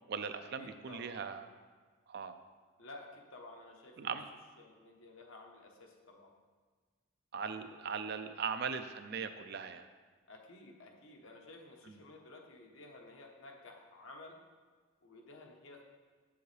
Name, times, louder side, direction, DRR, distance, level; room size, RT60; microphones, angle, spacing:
voice 1, 0.1-1.4 2.1-2.4 4.0-4.2 7.3-9.9, right 6 dB, 50° right, 9 dB, 0.4 m, -39 dB
voice 2, 0.6-1.4 2.8-4.2 4.6-6.3 7.6-7.8 8.2-8.4 10.3-14.4 15.0-15.8, left 2 dB, 70° left, 1 dB, 1.0 m, -53 dB
7.5 x 7.0 x 3.3 m, 1.5 s
head